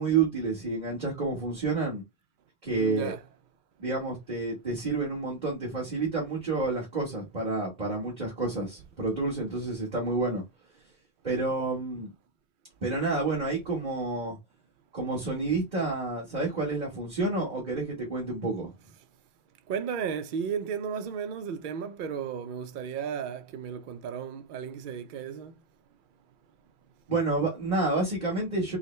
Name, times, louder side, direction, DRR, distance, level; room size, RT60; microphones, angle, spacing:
voice 1, 0.0-2.0 2.6-3.1 3.8-10.4 11.2-12.1 12.8-14.4 14.9-18.7 27.1-28.8, right 3 dB, 40° right, 1.5 m, -29 dB
voice 2, 2.8-3.2 19.7-25.5, right 7 dB, 60° right, 0.6 m, -34 dB
4.7 x 2.1 x 3.2 m
omnidirectional pair, 1.2 m